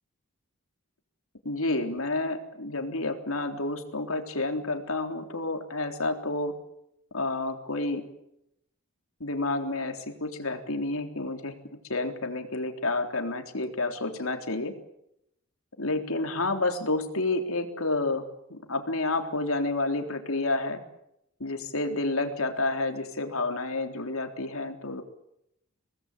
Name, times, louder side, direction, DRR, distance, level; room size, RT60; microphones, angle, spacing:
voice 1, 1.5-6.5 7.1-8.0 9.2-11.5 11.9-14.7 15.8-18.2 18.5-20.8 21.4-25.0, left 2 dB, 70° left, 6 dB, 3.7 m, -30 dB
25.0 x 19.5 x 8.5 m, 0.80 s
head